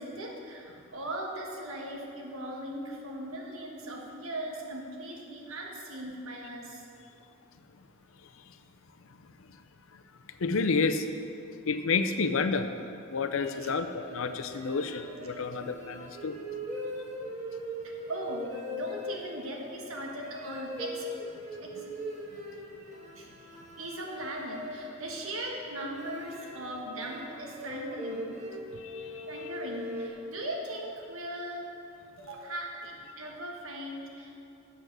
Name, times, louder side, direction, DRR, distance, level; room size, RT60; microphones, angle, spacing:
voice 1, 0.0-6.8 13.6-13.7 17.8-21.0 21.6-21.9 23.1-28.3 29.3-31.7 32.2-34.4, right 1 dB, 85° right, 0 dB, 1.6 m, -39 dB
voice 2, 10.4-11.1 11.7-12.8 13.1-16.4 28.7-29.5, left 4 dB, 75° left, 9 dB, 0.5 m, -30 dB
sound 1, 13.1-30.1, left 1 dB, 35° right, 1.4 m, -41 dB
8.1 x 7.9 x 6.1 m, 2.6 s
head